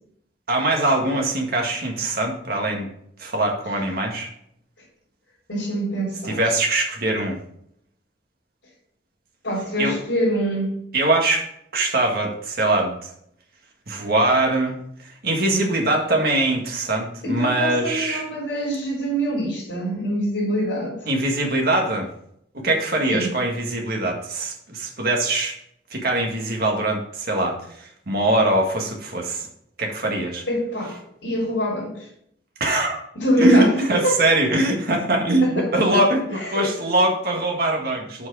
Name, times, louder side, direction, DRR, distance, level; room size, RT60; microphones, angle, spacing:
voice 1, 0.5-2.9 3.2-4.3 6.2-7.4 9.8-10.0 10.9-11.5 11.7-13.1 13.9-18.2 21.1-22.1 22.5-25.5 25.9-29.5 29.8-30.4 32.6-33.0 33.4-38.3, right 2 dB, 55° right, 1 dB, 1.7 m, -22 dB
voice 2, 5.5-6.4 9.4-10.7 17.2-21.1 23.1-23.3 30.5-31.0 31.2-32.1 33.2-34.2 35.4-36.0 36.3-36.7, equal, 85° left, -7 dB, 3.6 m, -25 dB
7.3 x 4.7 x 6.1 m, 0.71 s
head